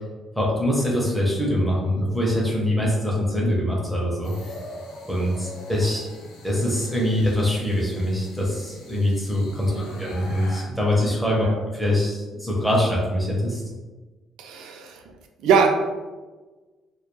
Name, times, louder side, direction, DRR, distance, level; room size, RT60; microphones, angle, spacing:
voice 1, 0.4-4.6 5.1-6.1 6.4-11.5 11.7-13.6, left 1 dB, 5° left, -4 dB, 0.5 m, -23 dB
sound 1, 4.2-10.6, left 1 dB, 80° left, 0.5 m, -43 dB
voice 2, 9.7-10.0 11.4-11.6 14.4-15.0 15.4-15.7, right 6 dB, 80° right, 4 dB, 0.3 m, -22 dB
2.2 x 2.1 x 3.0 m, 1.3 s
cardioid pair, 180°, 0 cm